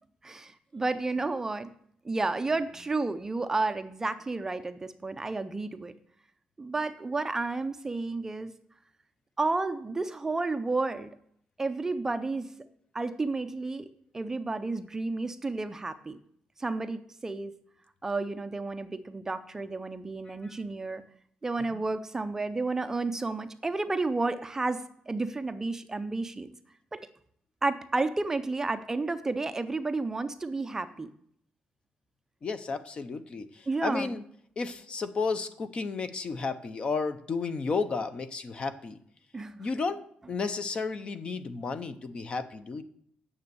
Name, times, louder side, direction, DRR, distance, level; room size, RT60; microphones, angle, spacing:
voice 1, 0.2-1.7 2.0-5.9 6.6-8.5 9.4-11.1 11.6-12.5 12.9-13.9 14.1-16.2 16.6-17.5 18.0-21.0 21.4-26.5 26.9-27.1 27.6-31.1 33.7-34.2 39.3-39.6, right 3 dB, 15° right, 10 dB, 0.5 m, -31 dB
voice 2, 32.4-34.2 34.6-39.0 39.6-40.0 40.3-42.8, left 4 dB, 35° left, 12 dB, 0.7 m, -32 dB
9.5 x 7.0 x 6.8 m, 0.66 s
wide cardioid pair, 170°, 3 cm